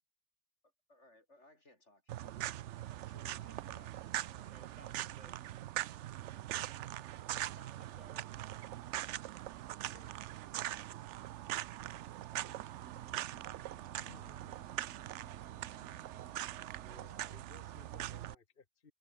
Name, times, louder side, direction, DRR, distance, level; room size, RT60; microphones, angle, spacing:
voice 1, 0.9-4.5 4.8-5.6, left 1 dB, 85° left, 6.8 m, -64 dB
sound 1, 2.1-18.3, right 13 dB, 85° right, 0.9 m, -42 dB
voice 2, 4.4-5.4 7.2-8.3, right 2 dB, 40° right, 1.7 m, -60 dB
sound 2, 12.3-16.9, equal, 5° right, 4.2 m, -62 dB
voice 3, 14.0-14.7 16.7-18.9, left 4 dB, 50° left, 1.6 m, -60 dB
omnidirectional pair, 1.2 m